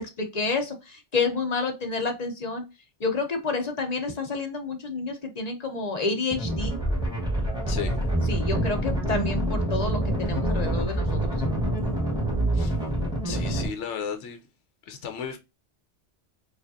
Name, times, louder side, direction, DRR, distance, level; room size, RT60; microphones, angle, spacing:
voice 1, 0.0-2.6 3.0-6.8 8.3-11.3, left 3 dB, 40° left, 0.8 m, -29 dB
sound 1, 6.3-13.7, right 1 dB, 5° right, 1.2 m, -26 dB
voice 2, 7.7-8.0 12.5-12.8 13.2-14.4 14.8-15.4, left 7 dB, 80° left, 1.0 m, -34 dB
4.9 x 2.5 x 2.6 m
omnidirectional pair, 1.2 m